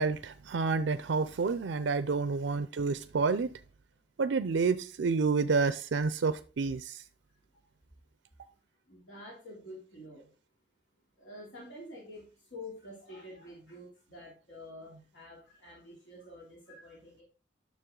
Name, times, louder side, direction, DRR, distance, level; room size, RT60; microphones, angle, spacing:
voice 1, 0.0-3.5 4.2-7.0, right 4 dB, 85° right, 0.5 m, -29 dB
voice 2, 8.9-10.3 11.2-17.2, left 1 dB, 80° left, 3.0 m, -48 dB
9.7 x 6.4 x 3.8 m
head